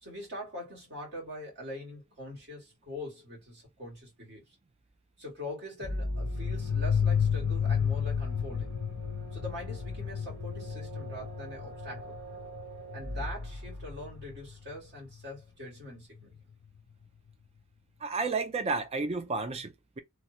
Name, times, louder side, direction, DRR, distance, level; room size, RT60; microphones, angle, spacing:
voice 1, 0.0-4.6 5.2-8.8 9.3-12.2 12.9-16.4, left 1 dB, 50° right, 1.8 m, -43 dB
sound 1, 5.8-14.4, equal, 80° right, 1.2 m, -39 dB
sound 2, 6.1-14.5, left 7 dB, 60° left, 0.4 m, -32 dB
voice 2, 18.0-20.0, right 3 dB, 25° right, 0.4 m, -32 dB
3.1 x 2.2 x 2.6 m
head